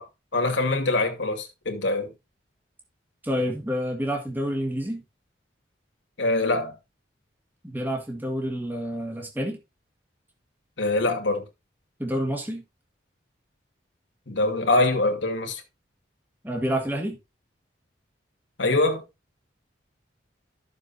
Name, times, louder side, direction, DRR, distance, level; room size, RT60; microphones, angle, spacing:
voice 1, 0.0-2.1 6.2-6.8 10.8-11.4 14.3-15.6 18.6-19.0, left 2 dB, 80° left, 2.5 m, -24 dB
voice 2, 3.2-5.0 7.6-9.6 12.0-12.6 16.4-17.2, equal, 10° right, 1.9 m, -28 dB
13.0 x 7.1 x 2.8 m
head